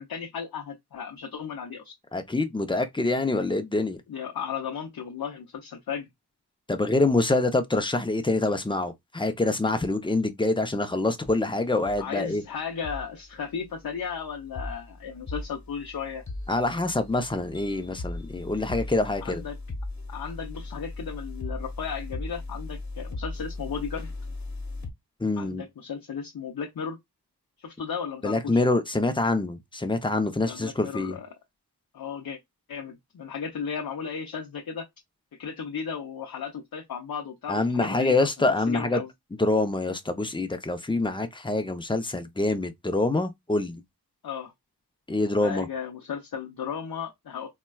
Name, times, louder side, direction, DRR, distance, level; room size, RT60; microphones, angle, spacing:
voice 1, 0.0-1.9 4.1-6.1 12.0-16.2 19.2-19.6 20.1-24.1 25.4-27.0 27.6-28.6 30.4-31.3 31.9-32.4 32.7-34.9 35.3-39.1 44.2-44.5 45.4-47.5, left 6 dB, 60° left, 0.6 m, -35 dB
voice 2, 2.1-4.0 6.7-12.4 16.5-19.4 25.2-25.6 28.2-31.2 37.5-39.0 39.4-43.8 45.1-45.7, left 2 dB, 15° left, 0.5 m, -25 dB
sound 1, 11.2-11.6 11.8-12.0 12.8-13.0 13.7-24.9, left 2 dB, 45° left, 1.0 m, -38 dB
4.1 x 2.2 x 2.2 m
wide cardioid pair, 50°, 40 cm